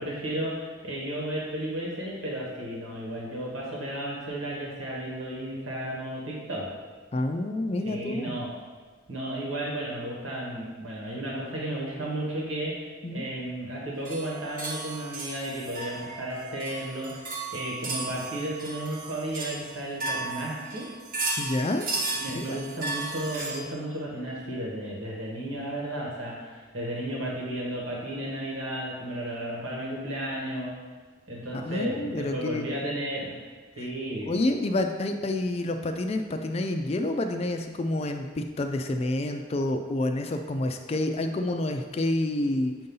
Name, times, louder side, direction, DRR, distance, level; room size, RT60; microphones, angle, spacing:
voice 1, 0.0-6.6 7.8-8.5 9.1-17.2 17.5-20.9 22.2-30.7 31.3-33.3 33.8-34.3, right 1 dB, 85° right, -3 dB, 1.5 m, -33 dB
voice 2, 7.1-8.3 13.0-13.3 21.4-21.9 22.3-22.6 31.5-32.7 33.8-33.9 34.2-42.7, left 1 dB, 30° left, 6 dB, 0.3 m, -28 dB
sound 1, 14.0-23.6, right 3 dB, 45° right, 1.0 m, -35 dB
7.5 x 2.7 x 5.4 m, 1.5 s
head